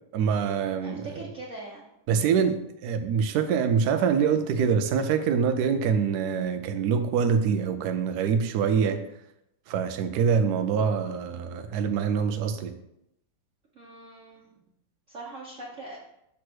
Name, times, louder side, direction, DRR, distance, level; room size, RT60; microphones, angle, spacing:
voice 1, 0.1-1.1 2.1-9.0 9.7-12.7, right 6 dB, 90° right, 7 dB, 0.8 m, -25 dB
voice 2, 0.8-1.9 13.7-14.4 15.1-16.0, right 2 dB, 50° right, -4 dB, 1.0 m, -41 dB
7.0 x 3.2 x 6.1 m, 0.81 s
omnidirectional pair, 2.4 m